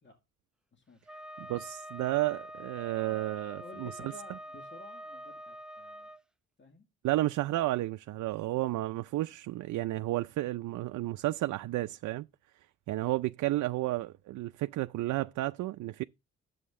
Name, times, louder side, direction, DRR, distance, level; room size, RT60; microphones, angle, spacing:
voice 1, 0.7-1.3 3.6-6.1 6.6-6.9, left 3 dB, 40° left, 2.2 m, -53 dB
Wind instrument woodwind instrument, 1.1-6.2, equal, 5° right, 0.6 m, -45 dB
voice 2, 1.4-4.1 7.0-12.3 12.9-16.0, right 17 dB, 75° right, 0.5 m, -32 dB
10.5 x 7.8 x 3.6 m
cardioid pair, 90°, 30 cm